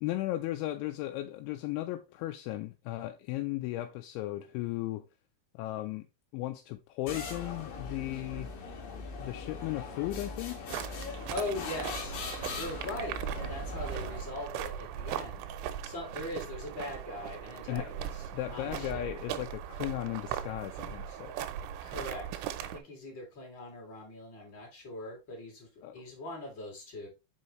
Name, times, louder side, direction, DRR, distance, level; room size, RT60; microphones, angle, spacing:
voice 1, 0.0-5.1 5.5-6.1 6.3-8.5 9.2-10.7 17.7-17.9 18.3-21.3 25.8-26.0, left 15 dB, 85° left, 2.9 m, -36 dB
sound 1, 7.1-14.5, left 4 dB, 65° left, 2.6 m, -41 dB
sound 2, 10.7-22.8, right 10 dB, 90° right, 3.1 m, -39 dB
voice 2, 11.3-12.2 12.5-18.2 18.5-19.0 21.8-27.1, left 1 dB, 30° left, 2.5 m, -41 dB
6.5 x 5.5 x 3.1 m
omnidirectional pair, 5.3 m